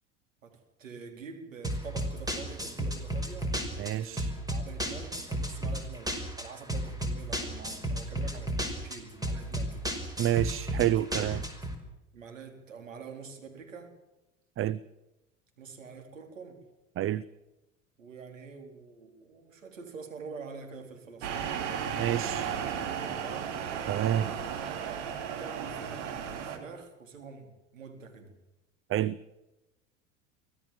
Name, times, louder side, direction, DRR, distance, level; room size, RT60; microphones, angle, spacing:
voice 1, 0.4-9.8 12.1-13.9 15.6-16.6 18.0-21.3 23.1-23.5 25.3-28.3, right 5 dB, 90° right, 5 dB, 4.1 m, -46 dB
sound 1, 1.6-11.7, equal, 10° right, 5.3 m, -33 dB
voice 2, 3.8-4.3 10.2-11.4 14.6-14.8 17.0-17.2 22.0-22.5 23.9-24.3 28.9-29.2, right 12 dB, 35° right, 19 dB, 0.7 m, -28 dB
sound 2, 21.2-26.6, right 8 dB, 70° right, 3.3 m, -34 dB
24.0 x 16.5 x 7.5 m, 0.99 s
hypercardioid pair, 80°, 38 cm